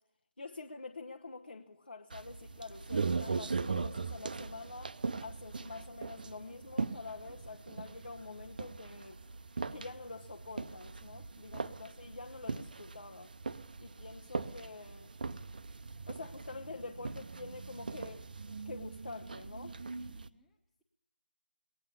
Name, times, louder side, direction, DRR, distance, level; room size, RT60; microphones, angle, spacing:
voice 1, 0.4-9.2 9.5-13.3 13.8-15.1 16.1-19.8, left 3 dB, 65° left, 1.0 m, -47 dB
sound 1, 2.1-20.3, right 4 dB, 50° right, 0.6 m, -40 dB
voice 2, 20.0-20.8, equal, ahead, 0.9 m, -71 dB
21.5 x 9.1 x 7.1 m
figure-of-eight pair, 155°, 6 cm